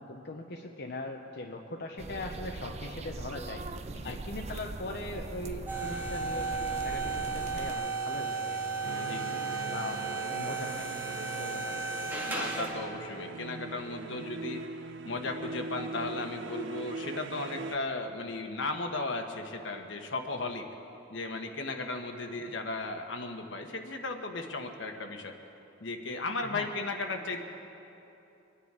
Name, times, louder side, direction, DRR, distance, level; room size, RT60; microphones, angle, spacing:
voice 1, 0.0-8.6 9.7-10.0 10.3-10.9 11.4-11.8 22.3-22.4 26.4-26.7, left 2 dB, 60° left, 1 dB, 0.9 m, -40 dB
sound 1, 2.0-7.7, right 3 dB, 35° right, 0.4 m, -41 dB
sound 2, 5.7-12.9, right 4 dB, 10° right, 2.1 m, -34 dB
sound 3, 8.8-17.8, right 3 dB, 85° right, 0.6 m, -41 dB
voice 2, 9.0-9.3 11.7-11.8 12.3-14.6 15.0-20.6 21.1-25.3 25.8-27.4, left 2 dB, 80° left, 5 dB, 1.2 m, -36 dB
24.0 x 10.0 x 4.9 m, 2.9 s
head